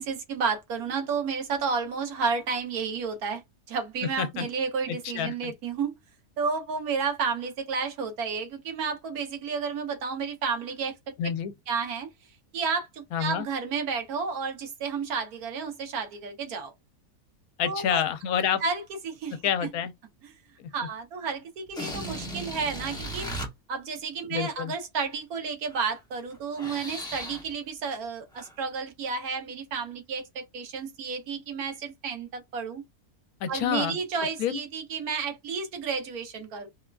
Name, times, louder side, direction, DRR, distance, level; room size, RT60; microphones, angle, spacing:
voice 1, 0.0-3.4 3.7-5.9 6.4-11.0 11.7-12.1 12.5-16.7 17.6-18.0 18.6-19.4 20.2-20.3 20.7-23.3 23.7-32.8 33.5-36.7, right 5 dB, 90° right, 1.4 m, -31 dB
voice 2, 4.9-5.5 11.2-11.5 13.1-13.5 17.6-18.6 19.4-19.9 20.6-20.7 24.3-24.7 33.4-34.0 34.4-34.6, left 9 dB, 80° left, 1.0 m, -28 dB
sound 1, 21.7-23.5 25.7-25.9 26.3-27.5 28.3-28.5, equal, 5° left, 0.4 m, -36 dB
3.6 x 2.2 x 2.3 m
omnidirectional pair, 1.5 m